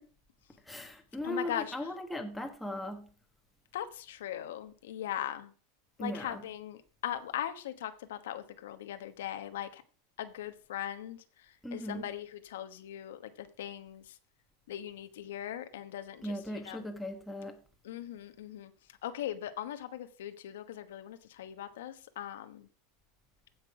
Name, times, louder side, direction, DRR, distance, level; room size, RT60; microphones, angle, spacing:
voice 1, 0.7-3.1 6.0-6.5 11.6-12.1 16.2-17.6, left 1 dB, 5° left, 1.5 m, -38 dB
voice 2, 1.2-1.7 3.7-5.5 6.0-9.8 10.2-11.2 11.7-14.0 14.7-16.3 16.6-16.8 17.8-18.7 19.0-22.7, left 11 dB, 90° left, 1.1 m, -39 dB
15.5 x 6.0 x 4.9 m
supercardioid pair, 155°, 0 cm